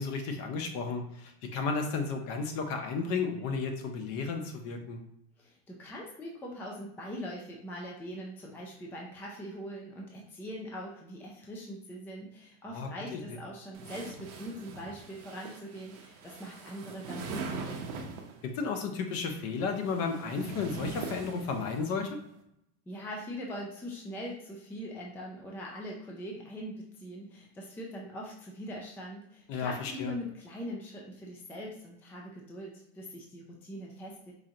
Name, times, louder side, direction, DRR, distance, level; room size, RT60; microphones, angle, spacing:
voice 1, 0.0-5.0 12.7-13.2 18.4-22.2 29.5-30.1, left 4 dB, 45° left, 5 dB, 0.7 m, -33 dB
voice 2, 5.4-17.8 22.9-34.3, equal, 5° left, -2 dB, 0.4 m, -42 dB
sound 1, 13.7-18.4 19.4-21.9, right 4 dB, 60° right, 0.8 m, -42 dB
4.9 x 2.6 x 2.8 m, 0.79 s
supercardioid pair, 145°, 35 cm